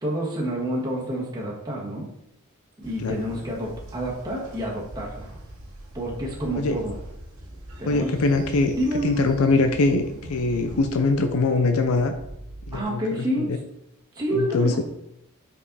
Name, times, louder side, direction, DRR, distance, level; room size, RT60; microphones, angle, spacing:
voice 1, 0.0-2.1 2.8-5.3 5.9-6.9 7.8-8.2 8.7-9.3 12.7-13.6 14.1-14.8, equal, 20° right, -3 dB, 1.5 m, -28 dB
Train, 2.8-12.8, right 1 dB, 85° right, 2.0 m, -42 dB
voice 2, 7.9-8.7 9.0-10.0 10.3-12.1 12.7-13.6 14.3-14.8, left 3 dB, 80° left, 7 dB, 0.5 m, -22 dB
5.4 x 5.3 x 4.1 m, 0.81 s
head